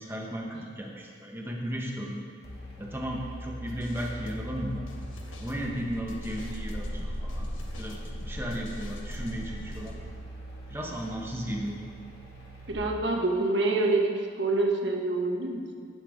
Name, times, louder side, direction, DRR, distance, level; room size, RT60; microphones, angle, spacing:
voice 1, 0.0-2.2 2.8-4.9 5.4-7.5 7.8-8.0 8.3-10.0 10.7-11.9 12.7-12.9, equal, 10° right, -1 dB, 1.1 m, -35 dB
sound 1, 2.4-12.7, equal, 50° left, 2.1 m, -39 dB
sound 2, 3.7-9.9, left 1 dB, 85° left, 1.2 m, -47 dB
voice 2, 12.7-15.9, right 2 dB, 65° right, 1 dB, 1.2 m, -27 dB
18.0 x 6.8 x 3.6 m, 2.1 s
head